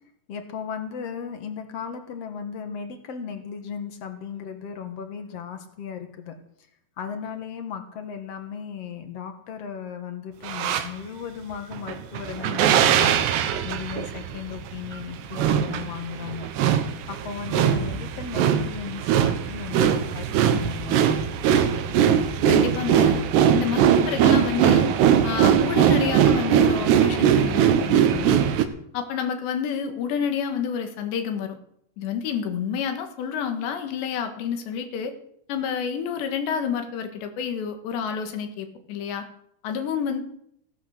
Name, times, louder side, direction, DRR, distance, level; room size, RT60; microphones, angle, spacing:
voice 1, 0.3-6.3 7.0-16.8 17.1-21.0, left 7 dB, 50° left, 6 dB, 2.0 m, -36 dB
sound 1, 10.4-10.9 11.7-28.7, right 8 dB, 85° right, 3.3 m, -21 dB
voice 2, 22.5-23.2 23.5-24.9 25.2-28.5 28.9-31.6 32.0-35.1 35.5-39.3 39.6-40.2, left 7 dB, 90° left, 6 dB, 4.0 m, -29 dB
16.5 x 12.0 x 6.6 m, 0.71 s
omnidirectional pair, 4.8 m